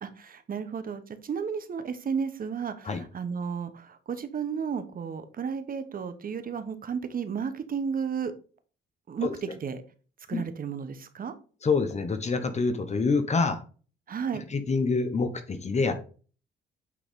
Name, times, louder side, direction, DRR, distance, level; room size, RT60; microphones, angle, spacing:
voice 1, 0.0-8.3 9.1-9.8 10.3-11.3 14.1-14.4, right 6 dB, 45° right, 10 dB, 1.1 m, -33 dB
voice 2, 11.6-13.6 14.5-16.0, left 4 dB, 35° left, 8 dB, 1.1 m, -26 dB
8.6 x 3.9 x 3.7 m, 0.38 s
cardioid pair, 90°, 20 cm